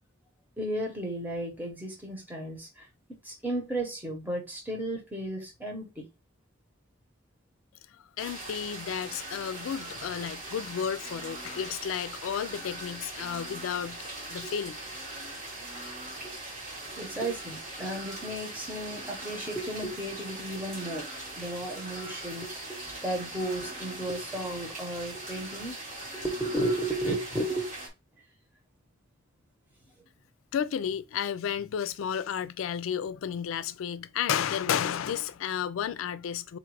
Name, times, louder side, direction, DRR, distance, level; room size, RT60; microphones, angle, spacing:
voice 1, 0.6-6.0 14.4-14.5 16.2-16.3 16.9-21.1 21.4-25.8 26.1-27.7, right 1 dB, 10° right, 1.0 m, -34 dB
voice 2, 8.2-14.8 30.5-36.6, left 8 dB, 80° left, 0.3 m, -32 dB
sound 1, 8.2-27.9, right 2 dB, 40° right, 1.2 m, -41 dB
3.9 x 2.4 x 4.6 m
head